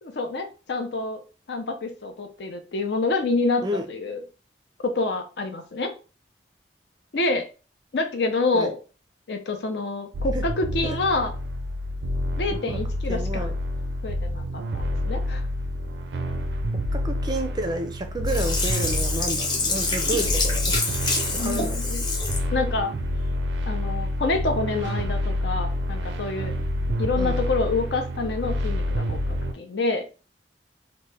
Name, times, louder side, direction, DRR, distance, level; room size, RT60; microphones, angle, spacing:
voice 1, 0.0-1.2 1.5-4.2 4.8-5.9 7.1-7.5 7.9-8.8 9.3-11.3 12.4-13.5 14.0-14.4 14.7-15.4 21.4-22.0 22.5-22.9 23.7-26.5 27.0-30.0, left 3 dB, 70° left, 5 dB, 0.6 m, -27 dB
sound 1, 10.1-29.5, left 1 dB, 80° right, 0.4 m, -28 dB
voice 2, 13.1-13.5 16.9-20.7 21.3-21.8 27.2-27.4, right 1 dB, 25° right, 6 dB, 0.4 m, -30 dB
Sink (filling or washing), 18.3-22.5 22.9-23.0, left 3 dB, 25° left, 0.8 m, -27 dB
2.9 x 2.1 x 3.3 m, 0.34 s
head